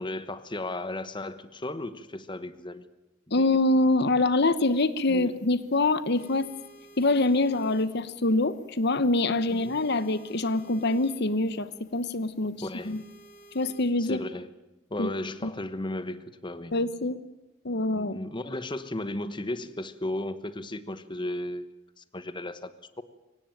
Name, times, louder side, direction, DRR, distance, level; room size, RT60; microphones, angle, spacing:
voice 1, 0.0-2.9 3.4-3.5 5.1-5.3 9.5-9.8 12.6-12.9 14.0-14.5 14.9-16.7 18.0-22.7, left 1 dB, 25° left, 13 dB, 1.1 m, -35 dB
voice 2, 3.3-6.5 7.0-12.6 12.9-13.0 13.5-14.2 15.0-15.1 15.4-15.5 16.7-17.2 17.6-18.2, left 2 dB, 55° left, 14 dB, 1.0 m, -25 dB
sound 1, 4.5-13.9, right 1 dB, 40° left, 4.9 m, -55 dB
24.0 x 18.0 x 9.1 m, 1.0 s
head